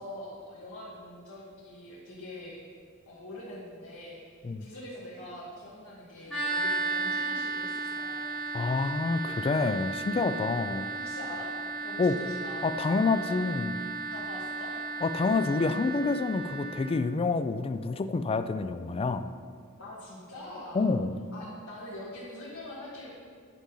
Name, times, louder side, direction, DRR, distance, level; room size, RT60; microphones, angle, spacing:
voice 1, 0.0-2.6 3.1-4.2 4.6-8.3 10.4-10.5 10.9-11.5 11.8-13.4 14.1-14.7 19.8-20.8 21.3-23.1, left 1 dB, 65° left, -8 dB, 1.5 m, -43 dB
sound 1, 6.3-16.9, right 3 dB, 5° left, 1.3 m, -34 dB
voice 2, 8.5-10.9 12.0-12.2 12.6-13.7 15.0-19.3 20.7-21.2, left 3 dB, 25° left, 10 dB, 0.3 m, -28 dB
10.0 x 5.6 x 3.8 m, 2.1 s
head